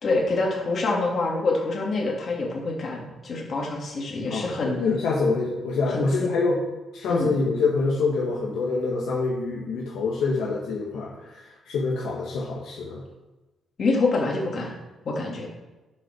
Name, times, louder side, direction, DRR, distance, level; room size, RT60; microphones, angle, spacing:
voice 1, 0.0-4.8 5.9-6.3 7.1-7.3 13.8-14.7 15.0-15.5, left 3 dB, 50° left, -2 dB, 2.9 m, -26 dB
voice 2, 4.3-6.6 6.9-13.0, left 3 dB, 80° left, -3 dB, 1.6 m, -26 dB
8.4 x 5.7 x 6.2 m, 1.1 s
cardioid pair, 90°, 0 cm